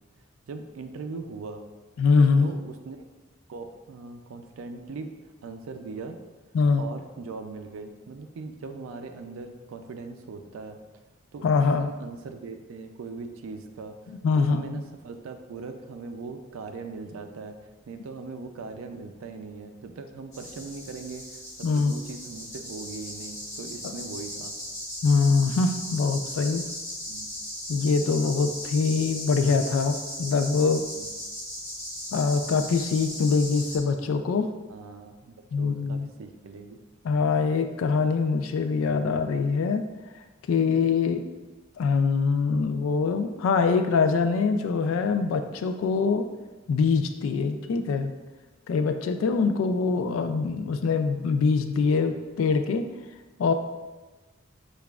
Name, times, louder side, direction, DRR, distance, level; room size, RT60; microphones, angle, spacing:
voice 1, 0.5-1.6 2.4-3.0 3.5-5.2 5.4-6.2 6.8-10.8 11.3-14.0 14.3-17.6 17.9-24.6 27.1-27.3 30.9-31.1 34.7-36.8, right 4 dB, 85° right, 7 dB, 0.4 m, -40 dB
voice 2, 2.0-2.5 6.5-6.8 11.4-11.9 14.2-14.8 21.6-21.9 23.8-23.9 25.0-26.6 27.7-30.8 32.1-34.5 35.5-36.1 37.0-39.8 40.5-41.2 41.8-46.3 46.7-48.1 48.7-52.8 53.4-53.5, left 4 dB, 75° left, 8 dB, 0.3 m, -23 dB
sound 1, 20.3-33.8, left 1 dB, 35° left, 1.1 m, -37 dB
6.7 x 2.4 x 2.3 m, 1.2 s
head